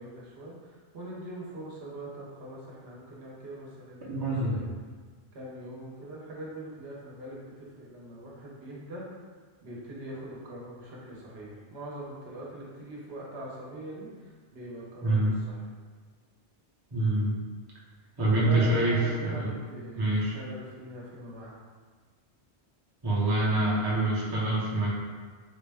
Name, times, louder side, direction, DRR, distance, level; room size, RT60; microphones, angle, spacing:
voice 1, 0.0-4.6 5.3-9.0 9.6-15.7 18.2-21.6 23.0-23.7, right 1 dB, 65° right, -4 dB, 1.0 m, -42 dB
voice 2, 4.1-4.7 15.0-15.4 16.9-17.4 18.2-19.0 19.2-19.5 20.0-20.3 23.0-24.9, right 1 dB, 25° right, -6 dB, 0.6 m, -26 dB
3.9 x 2.1 x 3.3 m, 1.5 s
omnidirectional pair, 1.2 m